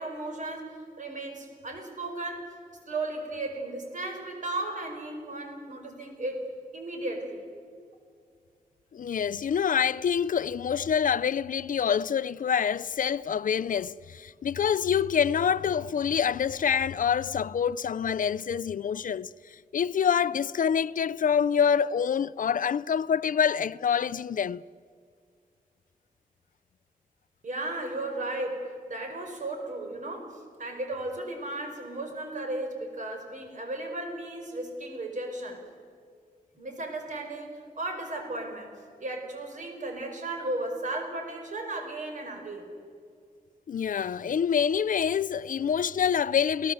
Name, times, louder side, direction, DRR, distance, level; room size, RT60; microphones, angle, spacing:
voice 1, 0.0-2.5 2.9-6.4 6.7-7.4 27.4-35.6 36.6-38.8 39.0-42.7, right 2 dB, 55° right, 5.2 m, -35 dB
voice 2, 8.9-19.3 19.7-24.6 43.7-46.7, left 7 dB, 65° left, 0.5 m, -26 dB
29.5 x 17.5 x 8.0 m
wide cardioid pair, 155°, 15 cm